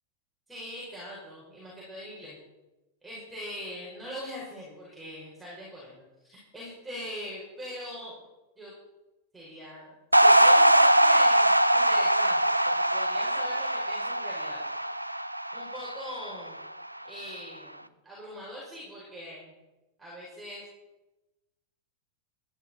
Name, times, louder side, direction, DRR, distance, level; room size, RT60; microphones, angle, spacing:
voice 1, 0.5-2.4 3.0-8.1 8.6-8.7 9.3-14.6 15.5-16.6 17.0-19.5 20.0-20.7, equal, 10° right, -7 dB, 5.3 m, -42 dB
sound 1, 10.1-16.6, right 1 dB, 85° right, 0.5 m, -22 dB
14.5 x 11.5 x 4.4 m, 1.0 s
figure-of-eight pair, 90°, 0 cm